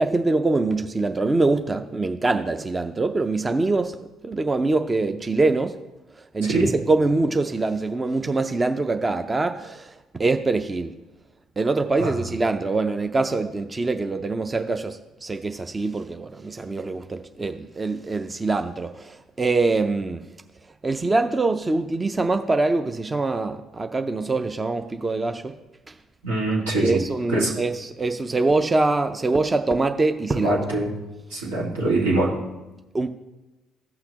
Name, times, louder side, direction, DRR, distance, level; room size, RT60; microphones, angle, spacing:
voice 1, 0.0-5.8 6.3-10.9 11.6-20.2 20.8-25.5 25.9-26.0 26.8-30.6 32.9-33.1, right 3 dB, 25° right, 7 dB, 0.5 m, -24 dB
voice 2, 26.2-27.0 27.3-27.5 30.4-30.9 31.3-32.3, right 2 dB, 85° right, -5 dB, 1.9 m, -23 dB
14.5 x 5.8 x 2.9 m, 1.1 s
hypercardioid pair, 55°, 0 cm